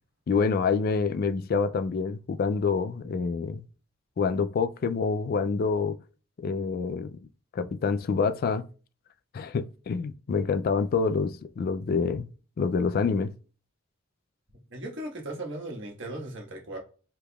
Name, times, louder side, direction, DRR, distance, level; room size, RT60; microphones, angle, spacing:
voice 1, 0.3-3.6 4.2-6.0 6.4-7.2 7.5-8.7 9.3-12.3 12.6-13.3, left 5 dB, 45° left, 0.3 m, -27 dB
voice 2, 14.7-16.8, right 1 dB, 60° right, 1.4 m, -37 dB
5.0 x 3.3 x 2.3 m
head